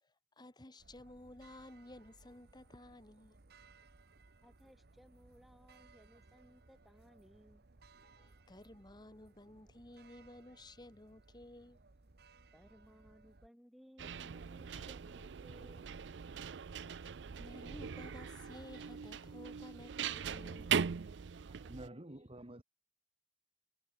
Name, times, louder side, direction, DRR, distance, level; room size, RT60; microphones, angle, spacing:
voice 1, 0.0-3.4 8.0-11.8 17.4-20.8, left 1 dB, 25° left, 1.6 m, -54 dB
sound 1, 0.8-13.5, right 3 dB, 65° right, 1.1 m, -63 dB
voice 2, 4.4-7.7 12.5-16.0, equal, ahead, 3.1 m, -61 dB
sound 2, 14.0-21.9, right 7 dB, 90° right, 0.5 m, -40 dB
voice 3, 21.5-22.6, right 1 dB, 35° right, 1.8 m, -50 dB
head